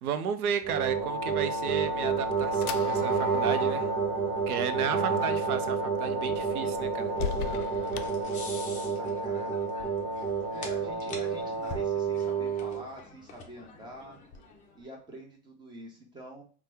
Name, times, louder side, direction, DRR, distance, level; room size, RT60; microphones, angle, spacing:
voice 1, 0.0-3.9 4.5-7.1, right 8 dB, 85° right, 0.6 m, -33 dB
sound 1, 0.6-12.9, right 4 dB, 55° right, 1.0 m, -29 dB
sound 2, 1.6-9.0, left 9 dB, 85° left, 0.5 m, -42 dB
sound 3, 6.3-14.9, left 3 dB, 20° left, 0.6 m, -47 dB
voice 2, 8.9-9.6 10.3-14.2 14.7-16.4, right 1 dB, 10° right, 0.8 m, -46 dB
2.8 x 2.2 x 3.4 m
hypercardioid pair, 120°, 43 cm